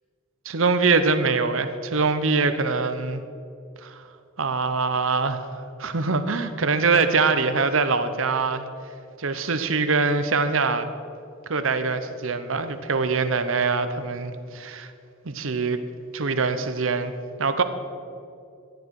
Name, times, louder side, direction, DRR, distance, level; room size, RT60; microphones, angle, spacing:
voice 1, 0.4-3.2 3.8-4.0 4.4-8.7 9.2-10.9 11.5-14.9 15.2-15.8 16.1-17.1 17.4-17.6, right 4 dB, 70° right, 10 dB, 0.9 m, -23 dB
15.5 x 9.7 x 4.8 m, 2.5 s
head